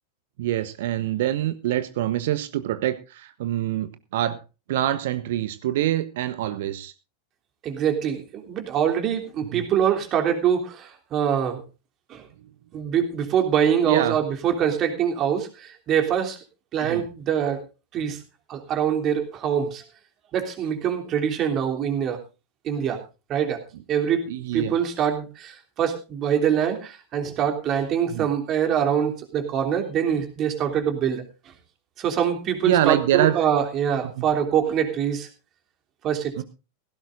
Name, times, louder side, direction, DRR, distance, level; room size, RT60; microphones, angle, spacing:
voice 1, 0.4-4.4 4.7-6.9 9.5-9.7 13.8-14.2 16.8-17.0 24.3-24.7 28.1-28.3 32.6-33.4 34.2-34.3 36.4-36.5, right 12 dB, 55° right, 13 dB, 1.0 m, -25 dB
voice 2, 7.6-11.6 12.1-12.2 12.7-16.4 16.7-17.6 17.9-18.2 18.5-19.8 20.3-22.2 22.6-23.0 23.3-23.6 23.9-24.3 24.5-31.2 32.0-35.3 36.0-36.4, right 8 dB, 30° right, 4 dB, 3.2 m, -24 dB
17.0 x 16.0 x 2.6 m, 0.30 s
figure-of-eight pair, 90°, 0 cm